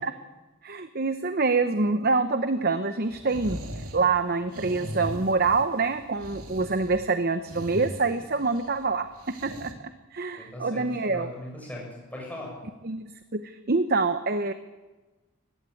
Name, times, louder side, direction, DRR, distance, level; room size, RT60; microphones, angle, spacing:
voice 1, 0.6-9.1 9.4-11.3 12.8-13.0 13.3-14.5, right 3 dB, 45° right, 10 dB, 0.8 m, -26 dB
sound 1, 3.0-9.7, equal, 85° right, 2.8 m, -40 dB
voice 2, 10.3-12.6, left 1 dB, 5° left, -2 dB, 7.3 m, -39 dB
19.5 x 15.5 x 9.2 m, 1.2 s
head